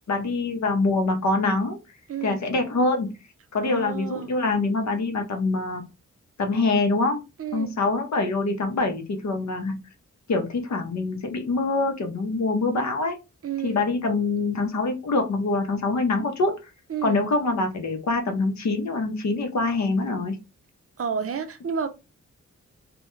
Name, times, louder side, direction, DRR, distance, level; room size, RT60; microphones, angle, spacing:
voice 1, 0.1-1.8 2.2-3.1 3.5-5.8 6.4-7.2 7.5-9.8 10.3-13.2 13.6-16.5 17.0-20.4, left 3 dB, 60° left, 0.7 m, -24 dB
voice 2, 2.1-2.4 3.6-4.3 7.4-7.7 13.4-13.8 16.9-17.2 21.0-21.9, right 7 dB, 45° right, 0.4 m, -30 dB
2.2 x 2.1 x 3.0 m
cardioid pair, 80°, 31 cm